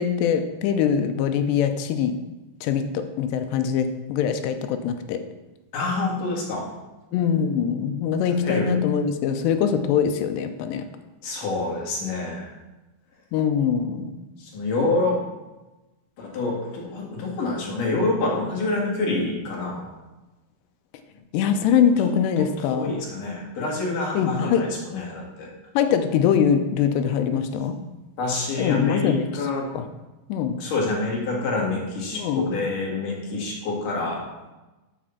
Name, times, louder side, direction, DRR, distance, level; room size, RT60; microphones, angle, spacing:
voice 1, 0.0-2.2 2.6-5.2 7.1-10.9 13.3-14.2 21.3-23.0 24.1-24.7 25.8-27.8 28.6-29.5 29.7-29.9 30.3-30.6 32.1-32.6, left 7 dB, 80° left, 8 dB, 2.6 m, -23 dB
voice 2, 5.7-6.6 8.4-8.7 11.2-12.5 14.4-15.2 16.2-19.9 22.4-25.5 28.2-29.7 30.6-34.2, left 3 dB, 55° left, -2 dB, 3.0 m, -27 dB
7.5 x 6.0 x 7.0 m, 1.1 s
omnidirectional pair, 5.4 m